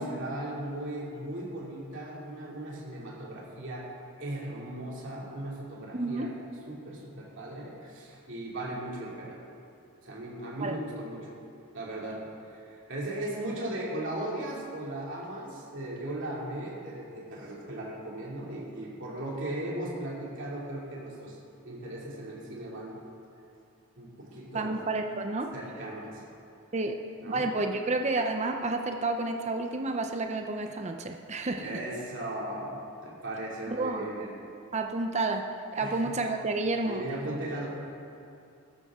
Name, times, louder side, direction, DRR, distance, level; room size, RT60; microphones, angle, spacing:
voice 1, 0.0-3.8 4.2-6.3 6.7-9.4 10.0-11.3 11.7-12.2 12.5-21.4 21.6-23.0 24.0-24.8 25.5-26.2 27.2-27.5 31.6-34.3 35.7-36.1 36.8-37.7, right 1 dB, 60° right, -4 dB, 2.6 m, -37 dB
voice 2, 5.9-6.3 10.6-10.7 24.5-25.5 26.7-27.0 27.3-31.7 33.7-34.1 34.7-35.4 35.7-37.0, right 2 dB, 30° right, 4 dB, 0.7 m, -30 dB
15.0 x 12.5 x 3.7 m, 2.5 s
head